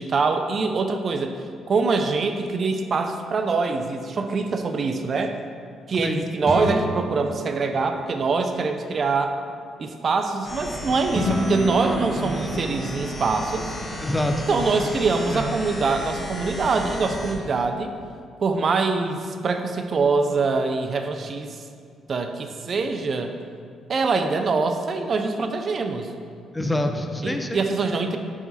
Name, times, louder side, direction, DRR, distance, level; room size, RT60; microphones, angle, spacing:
voice 1, 0.0-1.3 1.7-5.4 5.9-9.3 9.8-13.7 14.5-17.9 18.4-21.6 22.1-23.3 23.9-26.1 27.2-28.2, right 4 dB, 45° right, 6 dB, 0.4 m, -24 dB
sound 1, 6.5-8.5 11.1-13.3, right 1 dB, 30° right, 1.1 m, -28 dB
sound 2, 10.4-17.3, left 1 dB, 30° left, 1.3 m, -34 dB
voice 2, 11.8-12.4 14.0-14.7 15.3-15.5 26.5-27.6, left 1 dB, 15° left, 5 dB, 0.5 m, -27 dB
5.0 x 4.8 x 4.1 m, 2.2 s
cardioid pair, 90°, 0 cm